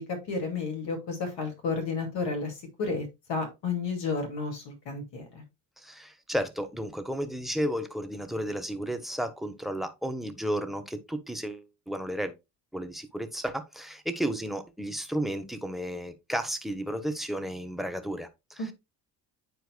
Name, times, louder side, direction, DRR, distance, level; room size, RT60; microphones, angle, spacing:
voice 1, 0.0-5.4 18.6-18.7, left 4 dB, 60° left, 2.4 m, -32 dB
voice 2, 5.8-12.3 12.7-18.6, equal, ahead, 0.9 m, -33 dB
9.5 x 4.6 x 2.2 m
hypercardioid pair, 55°, 49 cm